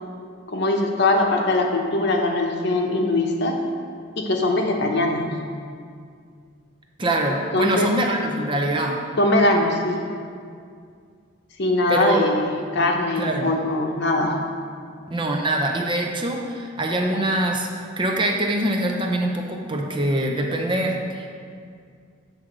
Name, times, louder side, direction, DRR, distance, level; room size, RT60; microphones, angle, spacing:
voice 1, 0.5-3.6 4.2-5.3 7.3-7.9 9.2-10.0 11.6-14.4, left 2 dB, 55° left, 1 dB, 0.9 m, -21 dB
voice 2, 7.0-9.0 11.9-12.2 13.2-13.5 15.1-17.7 18.0-21.3, right 1 dB, 25° right, 1 dB, 0.5 m, -24 dB
7.8 x 3.7 x 6.1 m, 2.2 s
head